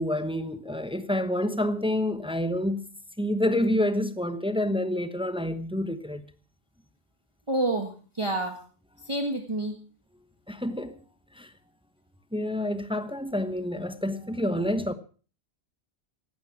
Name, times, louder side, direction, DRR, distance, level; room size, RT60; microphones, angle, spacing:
voice 1, 0.0-2.8 3.2-6.2 10.5-11.0 11.4-11.5 12.3-14.9, left 1 dB, 5° right, 1.0 m, -28 dB
voice 2, 7.5-8.6 9.0-9.8, right 2 dB, 25° right, 1.6 m, -28 dB
16.5 x 12.0 x 6.0 m
omnidirectional pair, 1.2 m